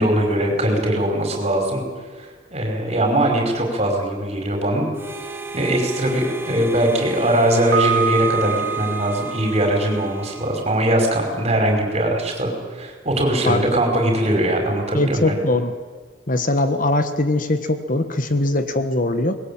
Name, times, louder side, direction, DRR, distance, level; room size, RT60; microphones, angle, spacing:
voice 1, 0.0-1.8 2.2-4.9 5.5-15.3, right 1 dB, 35° right, 2 dB, 5.3 m, -21 dB
Harmonica, 4.9-11.3, right 2 dB, 10° right, 1.7 m, -35 dB
Piano, 7.7-10.6, right 7 dB, 60° right, 1.0 m, -26 dB
voice 2, 14.9-15.7 16.3-19.4, left 2 dB, 45° left, 9 dB, 1.3 m, -21 dB
24.5 x 21.0 x 8.9 m, 1.5 s
head